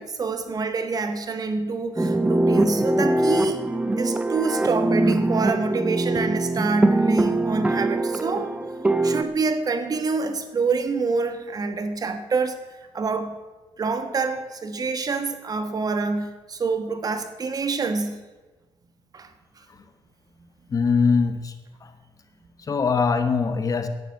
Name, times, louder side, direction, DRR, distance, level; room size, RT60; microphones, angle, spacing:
voice 1, 0.0-3.6 4.0-8.5 9.0-12.6 12.9-13.3 13.8-18.2 19.1-19.3, right 4 dB, 40° right, 8 dB, 1.4 m, -26 dB
sound 1, 2.0-9.2, right 2 dB, 15° right, 0.7 m, -22 dB
voice 2, 20.7-21.5 21.8-21.9 22.6-23.9, left 5 dB, 35° left, 9 dB, 1.3 m, -22 dB
11.0 x 9.1 x 8.4 m, 1.2 s
cardioid pair, 115°, 10 cm